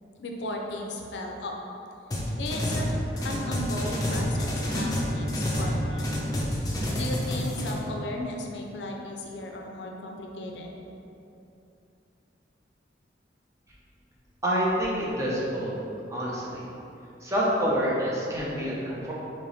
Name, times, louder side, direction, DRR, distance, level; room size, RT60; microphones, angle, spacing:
voice 1, 0.2-1.6 2.4-6.1 7.0-10.7, left 1 dB, 75° left, 1 dB, 0.5 m, -35 dB
sound 1, 2.1-2.9 3.2-5.7 6.0-7.7, left 1 dB, 20° left, 0.6 m, -29 dB
Bowed string instrument, 3.1-8.0, left 1 dB, 80° right, 0.7 m, -38 dB
voice 2, 14.4-15.7 16.1-16.6 17.2-19.1, equal, 15° right, -7 dB, 0.7 m, -27 dB
3.4 x 2.9 x 4.0 m, 2.8 s
head